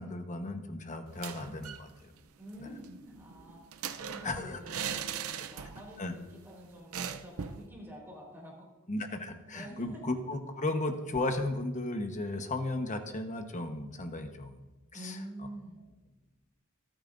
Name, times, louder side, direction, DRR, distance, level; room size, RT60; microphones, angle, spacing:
voice 1, 0.0-2.1 2.6-2.7 4.2-4.6 6.0-6.1 8.9-14.6 14.9-15.2, left 2 dB, 35° left, 6 dB, 1.1 m, -35 dB
sound 1, 1.1-1.9 2.2-2.3 2.5-6.0 6.3-6.4 6.9-7.7, right 7 dB, 85° right, 0.7 m, -39 dB
voice 2, 2.4-3.6 4.0-8.7 9.5-10.0 14.9-15.8, equal, 10° right, -3 dB, 4.1 m, -47 dB
27.0 x 9.1 x 2.6 m, 1.1 s
head